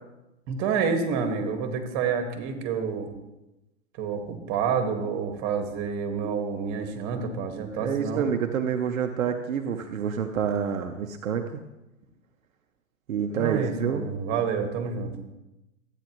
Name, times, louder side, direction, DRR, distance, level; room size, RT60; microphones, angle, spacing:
voice 1, 0.5-3.1 4.0-8.3 13.4-15.2, right 6 dB, 40° right, 5 dB, 1.8 m, -28 dB
voice 2, 7.8-11.6 13.1-14.0, right 7 dB, 80° right, 5 dB, 0.9 m, -28 dB
13.5 x 8.9 x 3.0 m, 0.97 s
hypercardioid pair, 105°, 40 cm